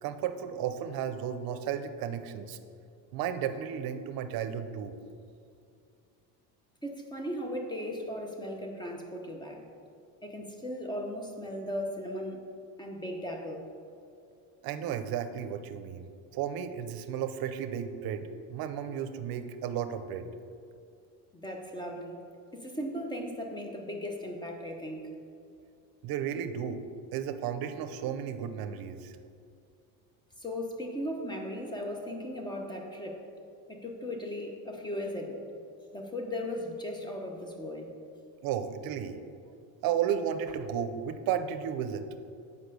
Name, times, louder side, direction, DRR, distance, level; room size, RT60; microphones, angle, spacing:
voice 1, 0.0-2.6 3.1-4.9 14.6-16.1 16.3-20.3 26.0-26.8 27.1-29.1 38.4-39.2 39.5-39.6 39.8-42.1, right 8 dB, 65° right, 10 dB, 0.7 m, -33 dB
voice 2, 6.8-9.6 10.2-12.4 12.8-13.6 21.3-22.2 22.5-25.1 30.4-33.2 33.7-35.4 35.9-37.9, left 1 dB, 10° left, 2 dB, 1.0 m, -37 dB
8.0 x 5.4 x 6.8 m, 2.4 s
cardioid pair, 140°, 39 cm